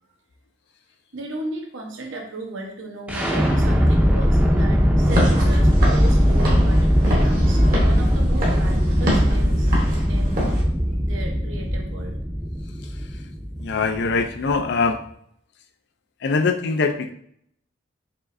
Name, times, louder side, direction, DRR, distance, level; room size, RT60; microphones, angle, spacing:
voice 1, 1.1-9.8 10.1-10.4 11.0-12.1, right 1 dB, 70° right, 1 dB, 0.9 m, -35 dB
sound 1, 3.1-14.9, equal, 5° right, 0.6 m, -19 dB
Walk footsteps / Siren, 5.0-10.6, equal, 45° right, 0.9 m, -28 dB
voice 2, 13.6-15.0 16.2-17.1, left 4 dB, 55° left, 7 dB, 0.4 m, -22 dB
4.7 x 3.1 x 2.5 m, 0.67 s
head